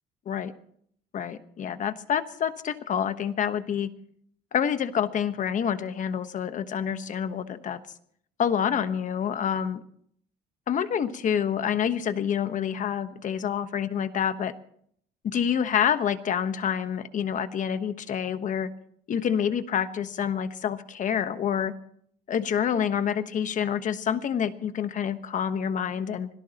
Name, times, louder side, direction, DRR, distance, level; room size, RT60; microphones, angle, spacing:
voice 1, 1.1-3.9 4.5-7.8 8.4-9.8 10.7-14.5 15.2-18.7 19.1-21.7 22.3-26.3, left 8 dB, 50° left, 11 dB, 1.2 m, -27 dB
25.5 x 17.5 x 3.0 m, 0.65 s
cardioid pair, 110°, 17 cm